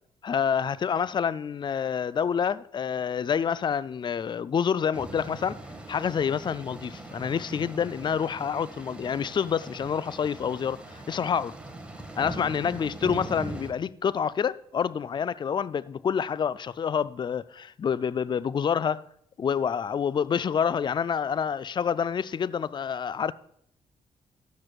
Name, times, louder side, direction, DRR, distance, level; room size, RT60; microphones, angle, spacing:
voice 1, 0.2-5.6 5.9-10.8 11.1-11.6 12.2-19.1 19.4-23.3, left 7 dB, 30° left, 0.3 m, -27 dB
sound 1, 4.9-13.7, right 2 dB, 10° right, 1.8 m, -41 dB
13.0 x 9.4 x 2.4 m
hypercardioid pair, 45°, 15 cm